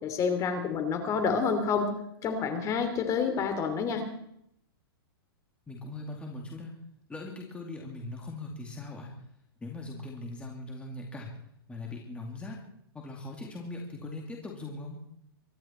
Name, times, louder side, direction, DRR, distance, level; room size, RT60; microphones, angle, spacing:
voice 1, 0.0-1.9 2.2-4.1, left 5 dB, 25° left, 7 dB, 2.9 m, -28 dB
voice 2, 5.7-6.7 7.1-9.1 9.6-11.3 11.7-12.6 12.9-15.0, left 2 dB, 10° left, 0 dB, 2.4 m, -40 dB
24.0 x 12.5 x 4.4 m, 0.75 s
hypercardioid pair, 145°, 13 cm